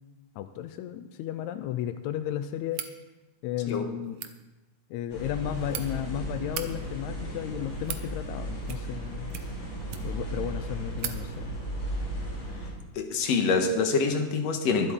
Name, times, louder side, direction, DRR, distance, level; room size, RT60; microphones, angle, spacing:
voice 1, 0.4-2.8 3.4-4.2 4.9-9.3 10.0-11.6, left 11 dB, 85° left, 10 dB, 1.7 m, -34 dB
sound 1, 2.7-3.0 4.0-4.3 5.3-5.8 6.4-6.7 7.5-8.1 8.6-9.0 9.3-10.3 10.6-10.7 11.0-11.2, right 10 dB, 85° right, 1.3 m, -38 dB
sound 2, 5.1-12.7, right 1 dB, 45° left, 4.9 m, -35 dB
voice 2, 13.0-14.9, left 4 dB, 60° left, 5 dB, 2.1 m, -25 dB
24.0 x 8.0 x 3.8 m, 1.1 s
omnidirectional pair, 3.8 m